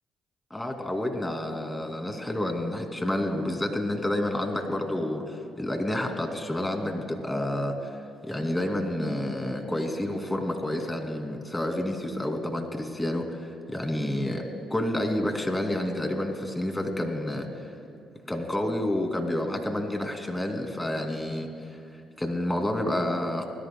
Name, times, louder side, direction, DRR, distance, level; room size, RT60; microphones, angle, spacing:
voice 1, 0.5-14.4 14.7-17.7 18.3-21.8 22.2-23.4, left 1 dB, 10° left, 4 dB, 2.6 m, -29 dB
26.0 x 20.0 x 2.3 m, 2.4 s
hypercardioid pair, 50°, 0 cm